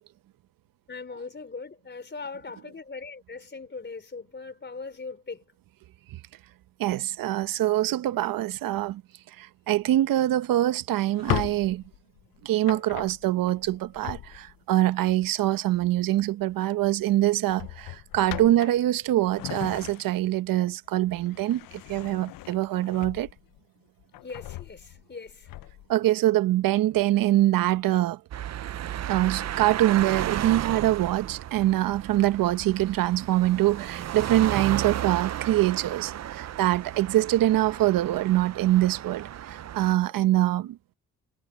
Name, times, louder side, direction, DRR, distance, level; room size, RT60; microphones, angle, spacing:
voice 1, 0.9-5.4 24.2-25.5, left 4 dB, 30° left, 4.1 m, -40 dB
voice 2, 6.8-9.0 9.4-11.8 12.4-21.6 21.9-23.3 25.9-28.2 29.1-40.8, right 14 dB, 75° right, 0.9 m, -24 dB
Drawer open or close, 11.0-14.7 16.2-16.5 16.8-17.0 17.5-20.4 20.8-23.6 24.0-25.9, left 17 dB, 75° left, 0.6 m, -38 dB
sound 1, 28.3-39.9, right 11 dB, 50° right, 0.6 m, -34 dB
cardioid pair, 70°, 34 cm